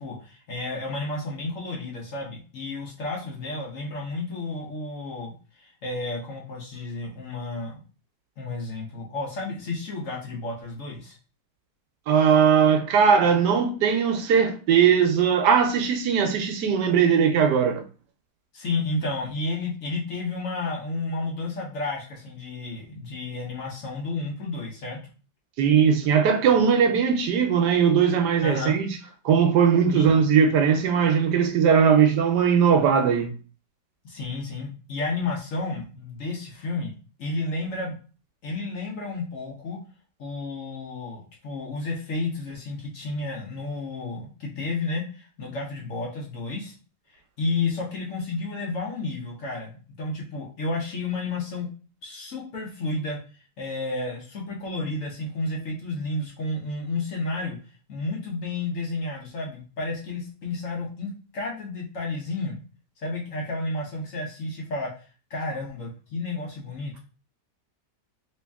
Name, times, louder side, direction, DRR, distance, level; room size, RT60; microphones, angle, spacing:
voice 1, 0.0-7.8 8.4-11.2 18.5-25.0 28.4-28.8 29.9-30.1 34.0-36.9 37.2-38.0 38.4-39.8 40.2-46.8 47.4-51.7 52.0-53.2 53.6-57.6 57.9-62.6 63.0-64.9 65.3-67.0, left 2 dB, 55° left, 1.2 m, -31 dB
voice 2, 12.1-17.8 25.6-29.0 29.2-33.3, right 7 dB, 75° right, 1.2 m, -19 dB
3.2 x 2.9 x 3.5 m
omnidirectional pair, 1.9 m